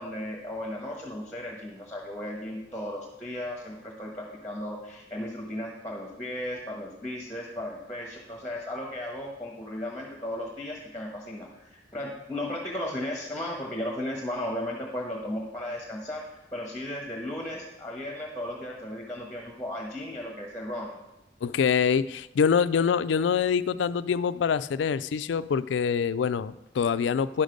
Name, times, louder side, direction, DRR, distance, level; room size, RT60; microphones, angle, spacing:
voice 1, 0.0-16.2 16.5-21.0, left 1 dB, 10° left, -1 dB, 1.2 m, -35 dB
voice 2, 21.4-27.4, left 6 dB, 80° left, 15 dB, 0.3 m, -25 dB
10.0 x 6.5 x 5.1 m, 0.95 s
head